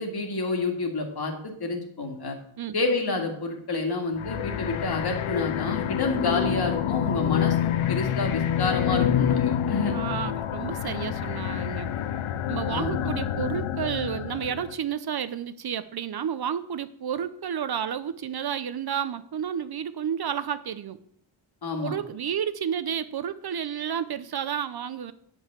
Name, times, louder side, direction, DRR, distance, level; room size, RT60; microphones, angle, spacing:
voice 1, 0.0-2.4 2.7-9.9 12.7-13.1 21.6-22.0, left 3 dB, 50° left, 3 dB, 2.0 m, -29 dB
sound 1, 4.2-14.7, left 10 dB, 80° left, 0.7 m, -27 dB
voice 2, 9.9-11.9 12.5-21.0 21.8-25.1, right 8 dB, 50° right, 13 dB, 0.6 m, -31 dB
9.7 x 5.6 x 7.3 m, 0.68 s
wide cardioid pair, 140°, 49 cm